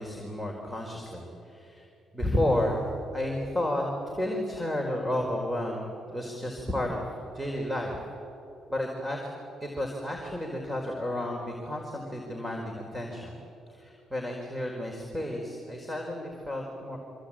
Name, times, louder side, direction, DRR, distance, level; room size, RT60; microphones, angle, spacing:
voice 1, 0.0-1.9 2.1-3.8 4.1-8.0 8.7-9.3 9.6-13.3 13.7-17.0, left 1 dB, 5° right, 1 dB, 4.6 m, -32 dB
26.5 x 25.0 x 9.0 m, 2.8 s
cardioid pair, 90°, 0 cm